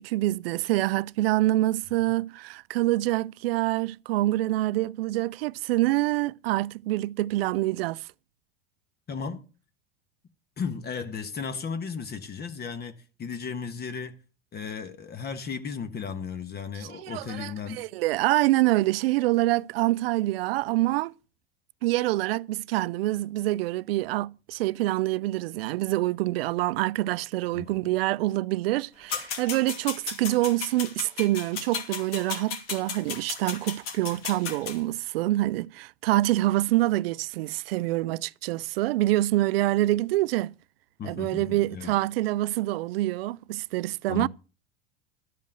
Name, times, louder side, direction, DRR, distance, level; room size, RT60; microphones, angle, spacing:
voice 1, 0.0-8.1 16.8-21.1 21.8-40.5 41.0-44.3, right 17 dB, 70° right, 0.5 m, -26 dB
voice 2, 9.1-9.4 10.6-14.2 14.5-17.8 27.5-27.9 41.0-41.9 44.1-44.3, left 6 dB, 30° left, 1.4 m, -35 dB
sound 1, 29.1-34.8, left 6 dB, 70° left, 2.5 m, -35 dB
12.5 x 5.4 x 7.7 m
hypercardioid pair, 85°, 31 cm